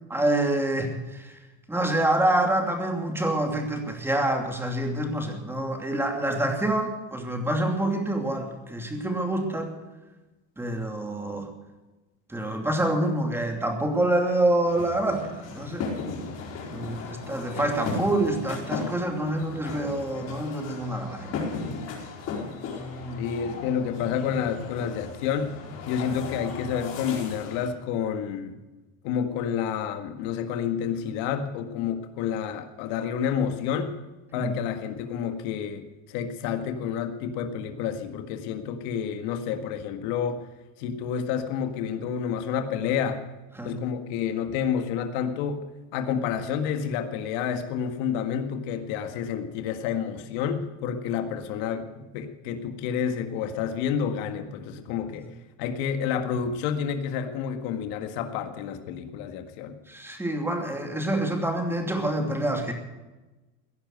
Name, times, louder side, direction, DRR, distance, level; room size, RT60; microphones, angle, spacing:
voice 1, 0.1-1.4 1.7-9.7 10.6-11.5 12.3-15.9 16.7-21.7 22.8-23.2 34.3-34.5 43.6-43.7 59.9-62.7, right 1 dB, 5° right, 3 dB, 2.7 m, -27 dB
sound 1, 14.7-27.7, left 4 dB, 50° left, 4.6 m, -36 dB
voice 2, 23.2-25.5 25.9-28.5 29.0-34.0 34.3-40.4 40.8-43.2 43.6-45.6 45.9-55.3 55.6-59.8, left 7 dB, 70° left, 6 dB, 1.8 m, -29 dB
16.5 x 10.5 x 8.0 m, 1.1 s
supercardioid pair, 135°, 34 cm